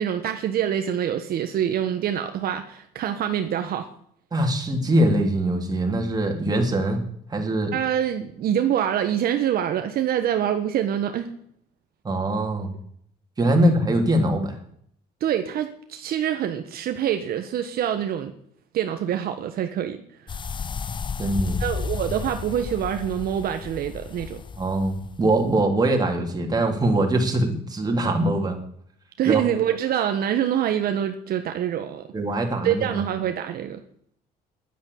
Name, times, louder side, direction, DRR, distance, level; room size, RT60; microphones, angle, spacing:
voice 1, 0.0-3.9 7.7-11.3 15.2-18.3 18.7-20.0 21.6-24.4 29.2-32.0 32.6-33.8, right 10 dB, 65° right, 6 dB, 1.3 m, -25 dB
voice 2, 4.3-7.0 7.3-7.7 12.0-12.7 13.4-14.6 21.2-21.6 24.6-28.6 29.3-29.4 32.1-33.0, right 1 dB, 25° right, 2 dB, 3.5 m, -22 dB
sound 1, 20.3-25.6, left 6 dB, 30° left, 0.7 m, -33 dB
11.0 x 9.6 x 8.6 m, 0.66 s
cardioid pair, 110°, 17 cm